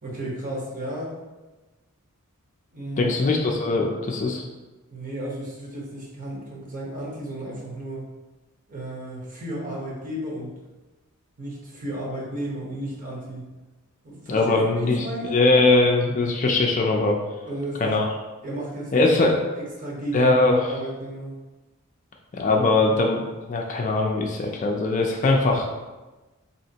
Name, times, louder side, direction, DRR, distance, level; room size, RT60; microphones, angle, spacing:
voice 1, 0.0-1.1 2.7-3.3 4.9-8.1 8.7-10.6 11.4-13.5 14.0-15.4 17.4-18.0 18.4-19.1 19.5-20.3 20.7-21.3, right 1 dB, 40° right, -4 dB, 1.0 m, -33 dB
voice 2, 3.0-4.4 14.3-15.1 15.3-17.2 17.8-18.1 18.9-19.5 20.1-20.5 22.3-23.2 23.5-25.7, left 2 dB, 35° left, 1 dB, 0.4 m, -21 dB
4.2 x 2.8 x 2.8 m, 1.2 s
head